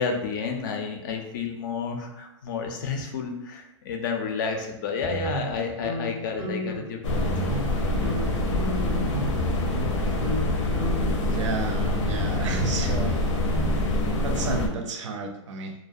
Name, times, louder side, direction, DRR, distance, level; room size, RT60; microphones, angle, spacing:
voice 1, 0.0-7.3, left 5 dB, 40° left, 3 dB, 0.4 m, -30 dB
sound 1, 5.0-6.9 7.2-7.8 8.0-9.9 10.2-10.5 10.7-13.8, equal, 10° right, 0.5 m, -33 dB
sound 2, 7.0-14.7, left 2 dB, 80° left, 0.6 m, -25 dB
voice 2, 11.3-13.3 14.2-15.7, right 4 dB, 75° right, 5 dB, 0.5 m, -32 dB
2.3 x 2.1 x 2.6 m, 0.86 s
hypercardioid pair, 160°, 16 cm